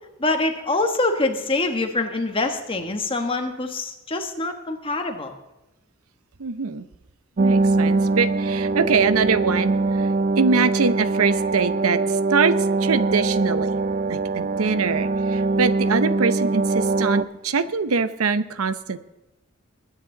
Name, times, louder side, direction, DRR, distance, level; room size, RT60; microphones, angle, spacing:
voice 1, 0.2-5.3, left 2 dB, 25° left, 5 dB, 1.4 m, -25 dB
voice 2, 6.4-6.8 7.4-10.1 10.4-13.7 14.1-19.0, right 5 dB, 90° right, 13 dB, 0.7 m, -23 dB
sound 1, 7.4-17.2, right 3 dB, 40° right, 0.4 m, -22 dB
21.0 x 9.4 x 3.9 m, 0.98 s
head